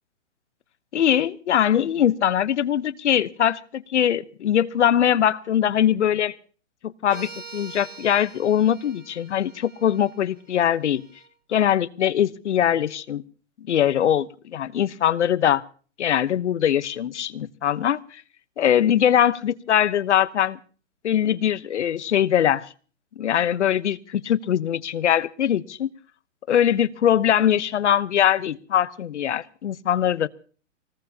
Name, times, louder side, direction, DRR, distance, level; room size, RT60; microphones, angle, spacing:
voice 1, 0.9-6.3 6.8-11.0 11.5-13.2 13.7-15.6 16.0-18.2 18.6-20.6 21.0-22.7 23.2-25.9 26.5-30.3, left 10 dB, 65° left, 15 dB, 1.0 m, -22 dB
sound 1, 7.1-11.3, right 4 dB, 85° right, 3.1 m, -45 dB
24.0 x 19.0 x 2.8 m, 0.41 s
hypercardioid pair, 175°, 37 cm